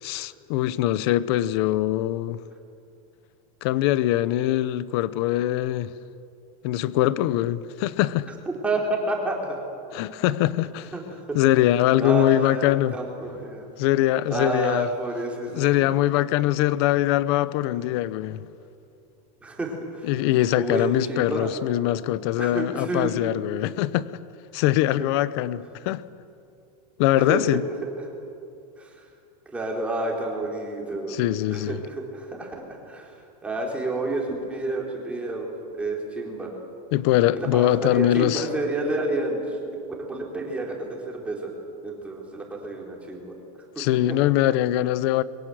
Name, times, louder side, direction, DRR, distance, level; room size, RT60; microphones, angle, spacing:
voice 1, 0.0-2.4 3.6-5.9 6.6-8.3 9.9-10.9 11.3-13.0 13.8-14.9 15.5-18.5 20.1-24.1 24.5-26.0 27.0-27.6 31.1-31.8 36.9-38.5 43.8-45.2, left 14 dB, 45° left, 0.8 m, -22 dB
voice 2, 8.5-9.6 10.9-11.4 11.6-11.7 12.0-13.7 14.3-15.7 19.4-20.1 20.6-21.6 22.4-23.2 25.0-25.1 27.2-27.6 28.0-28.1 28.8-29.1 29.5-31.2 31.5-33.1 33.4-36.7 37.3-39.6 40.1-41.6 41.8-43.3 43.8-44.2, right 2 dB, 5° right, 3.7 m, -30 dB
29.5 x 22.5 x 7.8 m
supercardioid pair, 175°, 20 cm